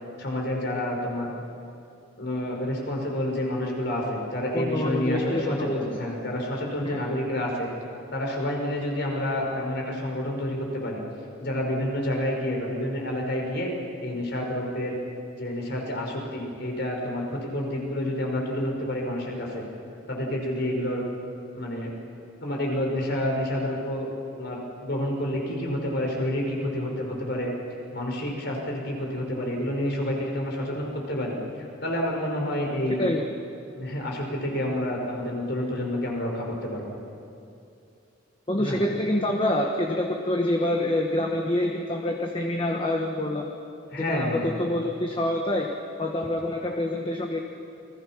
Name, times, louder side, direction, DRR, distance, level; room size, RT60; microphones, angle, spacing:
voice 1, 0.2-1.3 2.2-7.7 8.1-11.0 11.4-13.7 14.0-14.9 15.3-19.6 20.1-21.0 21.5-21.9 22.4-24.1 24.3-27.5 27.9-31.4 31.8-33.0 33.8-36.9 38.6-38.8 43.9-44.5, left 1 dB, 55° left, 0 dB, 5.2 m, -29 dB
voice 2, 4.5-6.0 6.8-7.0 32.9-33.4 38.5-43.5 44.0-45.7 46.0-47.4, left 1 dB, 25° left, 1 dB, 1.4 m, -26 dB
29.0 x 21.0 x 6.0 m, 2.6 s
head